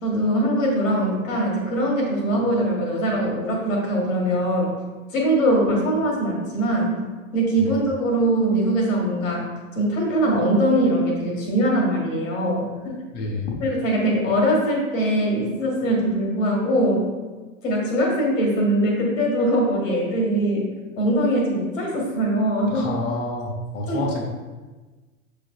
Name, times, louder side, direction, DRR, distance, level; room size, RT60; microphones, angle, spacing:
voice 1, 0.0-4.7 5.1-7.0 7.3-9.5 9.7-13.0 13.6-17.0 17.6-20.6 21.0-22.9 23.9-24.0, right 1 dB, 70° left, -1 dB, 1.4 m, -22 dB
voice 2, 13.1-13.6 22.7-24.2, left 2 dB, 25° left, -1 dB, 0.6 m, -28 dB
6.5 x 3.3 x 2.3 m, 1.3 s
figure-of-eight pair, 85°, 41 cm